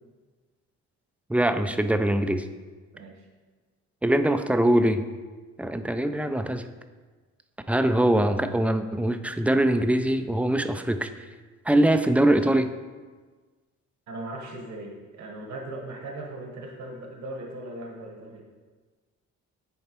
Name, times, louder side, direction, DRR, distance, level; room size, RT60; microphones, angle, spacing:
voice 1, 1.3-2.4 4.0-5.0 5.6-6.7 7.7-11.1 11.7-12.7, right 1 dB, 5° right, 8 dB, 0.3 m, -22 dB
voice 2, 2.9-3.2 14.1-18.4, right 2 dB, 65° right, 1 dB, 1.2 m, -38 dB
9.9 x 4.3 x 2.9 m, 1.4 s
cardioid pair, 90°, 30 cm